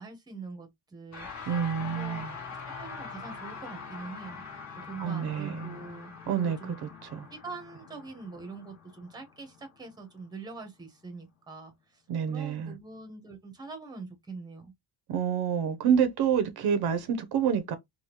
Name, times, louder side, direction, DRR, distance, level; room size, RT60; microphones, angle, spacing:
voice 1, 0.0-1.5 1.8-2.3 2.8-4.6 4.9-6.9 7.3-14.7, right 4 dB, 10° right, 0.8 m, -44 dB
sound 1, 1.1-10.6, left 5 dB, 40° left, 1.5 m, -43 dB
voice 2, 1.5-2.3 5.0-5.8 6.3-7.3 12.1-12.8 15.1-17.8, right 8 dB, 65° right, 0.7 m, -28 dB
3.5 x 2.3 x 2.9 m
cardioid pair, 165°, 42 cm